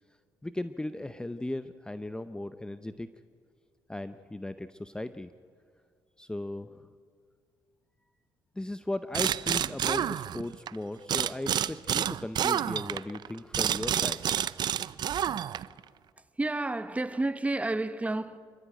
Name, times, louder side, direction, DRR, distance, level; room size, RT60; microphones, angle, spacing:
voice 1, 0.4-3.1 3.9-5.3 6.2-6.9 8.6-14.5 15.7-15.8, left 1 dB, 10° left, 0.7 m, -37 dB
sound 1, 9.1-10.7 11.1-15.8, right 10 dB, 60° right, 0.5 m, -29 dB
voice 2, 16.3-18.4, right 2 dB, 15° right, 1.1 m, -30 dB
26.5 x 14.0 x 9.3 m
cardioid pair, 85°, 8 cm